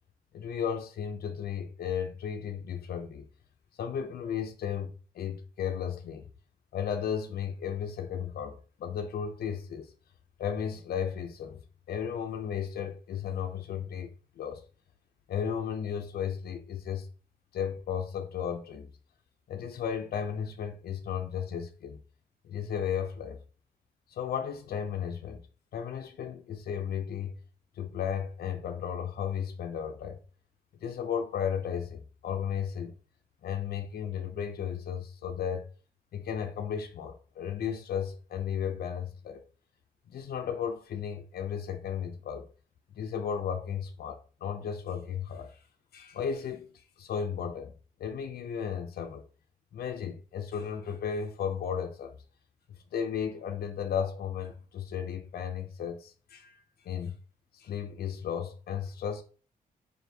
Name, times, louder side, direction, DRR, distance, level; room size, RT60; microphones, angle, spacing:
voice 1, 0.3-3.3 3.8-6.3 6.7-9.9 10.4-14.6 15.3-17.1 17.5-18.9 19.5-22.0 22.4-23.4 24.1-25.4 25.7-27.4 27.8-30.2 30.8-33.0 33.4-35.7 36.1-39.4 40.1-42.5 42.9-45.6 45.9-47.7 48.0-49.2 49.7-52.2 52.9-57.2 57.5-59.2, left 8 dB, 90° left, 0.6 m, -34 dB
4.3 x 2.6 x 3.3 m
wide cardioid pair, 135°, 16 cm